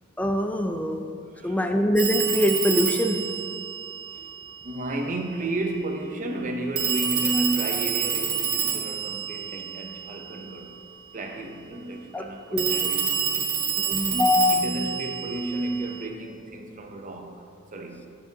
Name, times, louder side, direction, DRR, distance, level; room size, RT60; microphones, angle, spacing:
voice 1, 0.2-1.0 1.4-3.2 12.1-12.3 12.5-12.9 13.8-14.9, left 1 dB, 10° left, 0.4 m, -23 dB
voice 2, 1.3-1.7 4.1-4.3 4.6-10.8 11.1-13.8 14.5-17.5 17.7-18.1, right 2 dB, 40° right, 0.7 m, -32 dB
Telephone, 2.0-4.6 6.8-10.4 12.6-16.1, right 8 dB, 75° right, 1.3 m, -28 dB
10.5 x 6.8 x 2.8 m
head